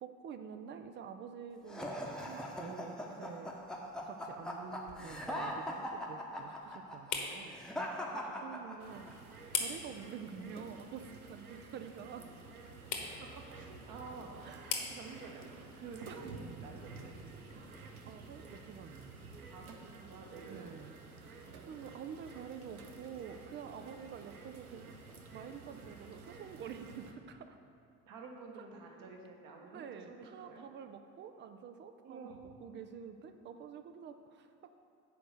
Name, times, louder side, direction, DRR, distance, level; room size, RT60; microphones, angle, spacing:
voice 1, 0.0-3.6 4.0-7.6 8.4-9.1 9.5-12.3 14.4-14.9 16.1-16.3 17.5-19.2 20.4-24.9 25.3-27.6 28.6-29.0 29.7-34.7, right 7 dB, 30° right, 8 dB, 0.4 m, -48 dB
sound 1, 1.7-9.1, equal, ahead, 0.9 m, -40 dB
sound 2, 3.5-18.3, left 5 dB, 45° left, 1.2 m, -46 dB
voice 2, 8.1-8.5 12.9-17.6 19.5-20.8 21.4-21.7 28.1-30.6 32.0-32.4, right 4 dB, 50° right, 1 dB, 1.3 m, -50 dB
sound 3, 8.8-27.1, right 4 dB, 85° right, 0.7 m, -52 dB
6.9 x 4.9 x 6.6 m, 2.5 s
figure-of-eight pair, 55°, 42 cm